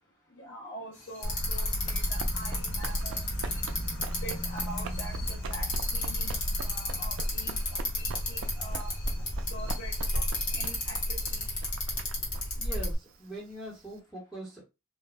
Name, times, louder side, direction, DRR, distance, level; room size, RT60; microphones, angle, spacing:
voice 1, 0.3-3.5 4.2-6.3 6.6-9.0 9.5-10.0 10.5-11.5, right 1 dB, 55° left, 0.8 m, -45 dB
sound 1, 0.9-11.5, left 2 dB, 30° left, 0.9 m, -51 dB
Bicycle, 1.2-13.0, left 1 dB, 75° left, 1.2 m, -32 dB
Run, 1.7-14.0, right 4 dB, 60° right, 0.4 m, -44 dB
voice 2, 12.6-14.6, right 1 dB, ahead, 0.8 m, -42 dB
2.4 x 2.0 x 3.3 m
head